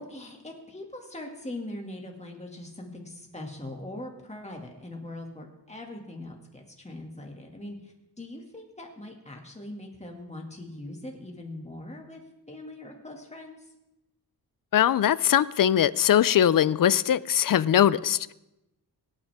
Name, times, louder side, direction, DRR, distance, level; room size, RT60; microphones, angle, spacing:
voice 1, 0.0-12.2 12.5-13.7, left 1 dB, 15° left, 1 dB, 2.3 m, -41 dB
voice 2, 14.7-18.3, left 10 dB, 55° left, 18 dB, 0.5 m, -21 dB
25.5 x 9.1 x 3.6 m, 0.94 s
wide cardioid pair, 135°, 40 cm